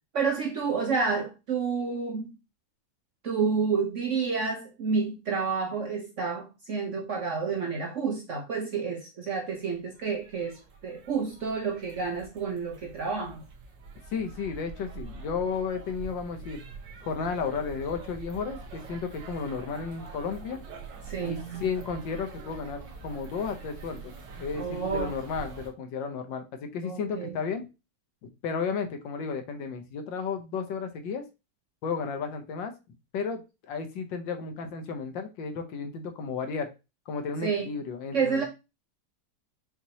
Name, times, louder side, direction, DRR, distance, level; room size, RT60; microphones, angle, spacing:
voice 1, 0.1-2.4 3.2-13.5 21.1-21.7 24.6-25.1 26.8-27.4 37.4-37.7 38.1-38.4, right 5 dB, 55° right, 0.9 m, -29 dB
sound 1, 9.5-25.7, right 4 dB, 75° right, 1.7 m, -45 dB
voice 2, 14.1-16.6 17.0-20.6 21.2-27.7 28.4-31.2 31.8-32.7 33.1-36.7 37.1-38.4, left 5 dB, 80° left, 1.5 m, -33 dB
5.7 x 3.1 x 2.8 m
omnidirectional pair, 2.0 m